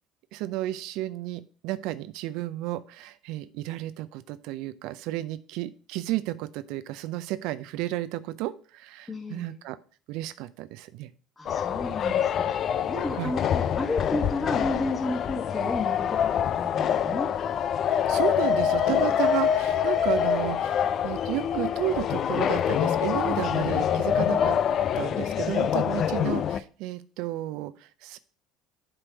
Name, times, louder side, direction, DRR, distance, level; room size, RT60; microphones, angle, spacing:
voice 1, 0.3-9.8 10.1-11.1 13.2-13.3 18.1-24.6 25.0-28.2, right 15 dB, 65° right, 15 dB, 0.5 m, -32 dB
voice 2, 9.1-9.5 11.4-17.3, left 2 dB, 20° left, -3 dB, 2.0 m, -33 dB
sound 1, 11.5-26.6, left 9 dB, 50° left, 0.5 m, -25 dB
7.7 x 4.5 x 5.1 m, 0.40 s
hypercardioid pair, 65°, 0 cm